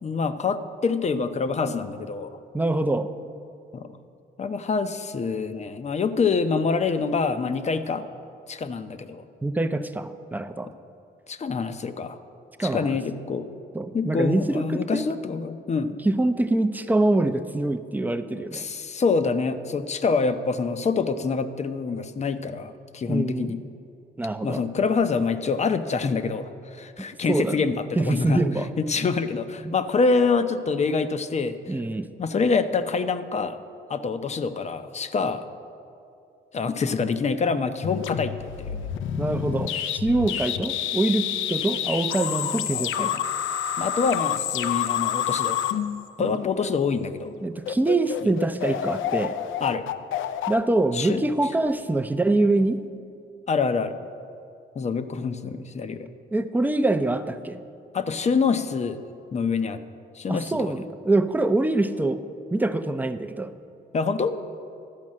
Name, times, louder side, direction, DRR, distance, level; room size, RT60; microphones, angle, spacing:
voice 1, 0.0-2.4 3.7-4.0 4.4-8.0 8.5-9.2 11.3-12.2 12.6-13.5 13.9-15.9 18.5-23.6 24.4-28.4 28.8-31.6 32.2-33.6 33.9-35.4 36.5-38.7 42.7-43.2 43.8-45.6 46.2-47.3 48.2-48.3 49.6-49.8 50.9-51.2 53.5-54.0 54.8-56.1 57.9-59.0 59.3-59.8 60.1-60.8 63.9-64.4, left 4 dB, 35° left, 11 dB, 0.6 m, -26 dB
voice 2, 2.5-3.1 9.4-10.7 12.6-13.0 13.7-15.1 16.0-18.6 23.1-23.5 24.2-24.6 27.3-27.6 28.0-28.7 29.6-29.7 31.7-32.1 39.2-43.1 46.2-46.3 47.4-49.4 50.5-52.8 56.3-57.6 60.3-62.2 62.5-63.5, right 2 dB, 10° right, 9 dB, 0.5 m, -24 dB
sound 1, 37.8-46.7 47.2-47.4 47.7-51.6, left 10 dB, 80° left, 0.5 m, -28 dB
12.0 x 5.3 x 7.5 m, 2.5 s
cardioid pair, 90°, 20 cm